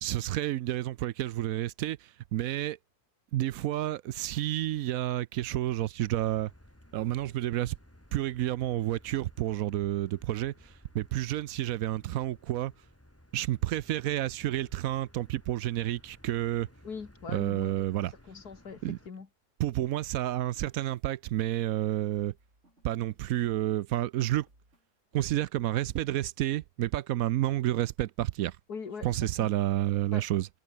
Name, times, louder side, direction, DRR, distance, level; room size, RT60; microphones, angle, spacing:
voice 1, 0.0-2.0 2.3-2.8 3.3-6.5 6.9-7.8 8.1-12.7 13.3-16.7 17.3-18.1 18.8-19.0 19.6-22.3 22.8-24.5 25.1-28.6 29.0-30.5, right 14 dB, 70° right, 0.9 m, -30 dB
Motor vehicle (road), 6.1-19.1, equal, 10° left, 4.1 m, -57 dB
voice 2, 16.8-17.8 18.3-19.3 28.7-29.5 30.1-30.2, left 5 dB, 75° left, 2.7 m, -42 dB
sound 1, 20.1-23.9 24.3-24.9 25.1-26.1 26.4-26.5, right 1 dB, 45° right, 8.6 m, -65 dB
omnidirectional pair, 1.7 m